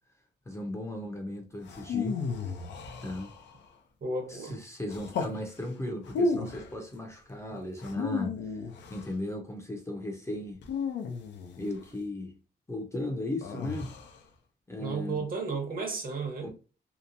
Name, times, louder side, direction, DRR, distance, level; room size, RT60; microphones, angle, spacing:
voice 1, 0.5-2.2 3.0-3.3 4.3-8.4 8.9-10.6 11.6-12.4 12.7-13.9 14.7-15.3 16.4-16.5, left 1 dB, 15° left, 0.5 m, -36 dB
sound 1, 1.6-3.6 4.9-5.4 6.0-6.7 7.8-9.1 10.6-11.8 13.4-14.2, left 4 dB, 90° left, 0.5 m, -33 dB
voice 2, 4.0-4.6 14.8-16.5, right 3 dB, 55° right, 1.0 m, -33 dB
2.9 x 2.2 x 2.5 m
cardioid pair, 105°, 18 cm